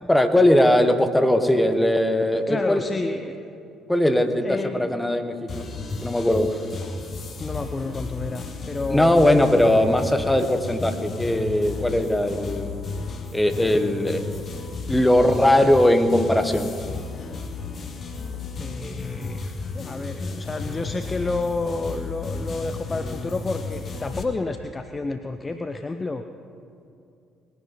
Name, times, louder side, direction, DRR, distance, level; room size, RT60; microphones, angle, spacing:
voice 1, 0.1-2.8 3.9-5.7 6.0-6.5 8.9-12.8 13.3-14.2 14.9-16.7, left 1 dB, 10° left, 8 dB, 1.4 m, -20 dB
voice 2, 2.5-3.4 4.4-5.0 6.5-7.0 7.4-9.6 18.5-26.2, left 3 dB, 25° left, 8 dB, 0.7 m, -30 dB
sound 1, 5.5-24.2, left 4 dB, 40° left, 1.5 m, -33 dB
20.5 x 10.0 x 5.6 m, 2.6 s
figure-of-eight pair, 45°, 0 cm